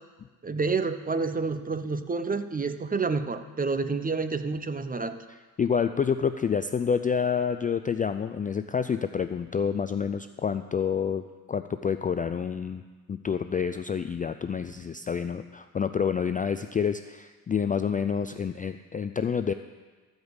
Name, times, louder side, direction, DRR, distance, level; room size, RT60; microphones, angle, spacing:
voice 1, 0.4-5.2, right 4 dB, 20° right, 10 dB, 0.8 m, -29 dB
voice 2, 5.6-12.8 13.1-19.5, left 7 dB, 20° left, 9 dB, 0.3 m, -28 dB
14.0 x 5.2 x 8.0 m, 1.4 s
supercardioid pair, 80°, 39 cm